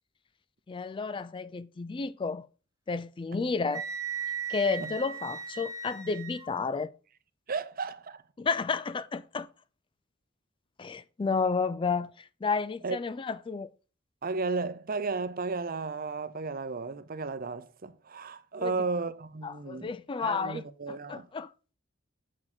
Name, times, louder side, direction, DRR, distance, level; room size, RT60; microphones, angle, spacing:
voice 1, 0.7-2.5 2.9-3.9 4.5-6.9 8.4-9.5 10.8-13.7 18.6-18.7 19.4-20.6 20.9-21.5, left 4 dB, 25° left, 0.3 m, -31 dB
Wind instrument woodwind instrument, 3.7-6.5, right 6 dB, 15° right, 0.9 m, -37 dB
voice 2, 7.5-8.2 12.8-13.0 14.2-19.9 20.2-21.3, right 4 dB, 45° right, 0.7 m, -34 dB
7.2 x 6.6 x 4.3 m
head